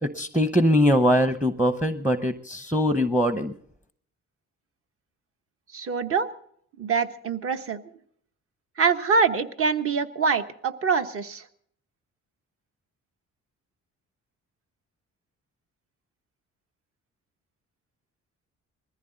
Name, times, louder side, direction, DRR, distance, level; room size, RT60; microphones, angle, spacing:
voice 1, 0.0-3.5, equal, 5° right, 9 dB, 0.8 m, -22 dB
voice 2, 5.7-6.3 6.8-7.8 8.8-11.5, right 5 dB, 45° right, 8 dB, 1.2 m, -24 dB
21.0 x 15.0 x 3.9 m, 0.63 s
cardioid pair, 90°, 30 cm